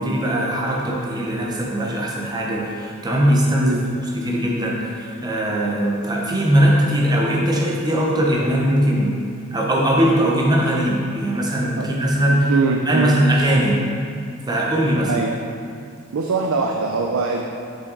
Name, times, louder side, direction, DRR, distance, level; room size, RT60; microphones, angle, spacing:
voice 1, 0.0-3.8 4.1-9.2 9.5-12.5 12.8-13.9 14.5-15.2, right 1 dB, 20° right, -3 dB, 0.8 m, -20 dB
voice 2, 11.8-13.2 15.1-15.3 16.1-17.5, right 4 dB, 70° right, 1 dB, 0.4 m, -23 dB
5.9 x 5.7 x 3.9 m, 2.3 s
head